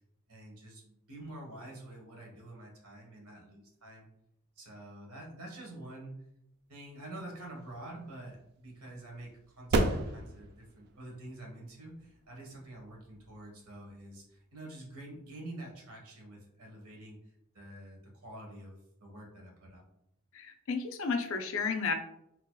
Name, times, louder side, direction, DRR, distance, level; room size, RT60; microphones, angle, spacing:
voice 1, 0.3-4.1 4.6-6.2 6.7-17.2 17.5-19.9, right 1 dB, 90° right, -1 dB, 1.3 m, -47 dB
sound 1, 7.4-14.4, right 2 dB, 50° right, 0.3 m, -37 dB
voice 2, 20.3-21.9, left 4 dB, 65° left, 6 dB, 0.5 m, -32 dB
4.0 x 2.9 x 2.3 m, 0.80 s
head